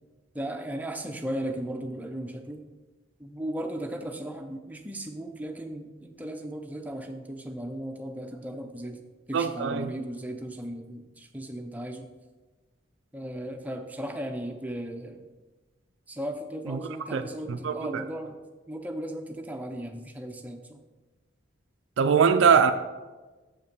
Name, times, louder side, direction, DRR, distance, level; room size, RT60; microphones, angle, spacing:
voice 1, 0.3-2.6 3.2-12.1 13.1-15.2 16.1-18.4 18.7-20.8, right 1 dB, 10° right, 0.5 m, -36 dB
voice 2, 9.3-9.9 16.7-16.8 17.1-17.2 17.5-18.0 22.0-22.7, right 6 dB, 70° right, 0.4 m, -22 dB
7.2 x 5.5 x 5.2 m
head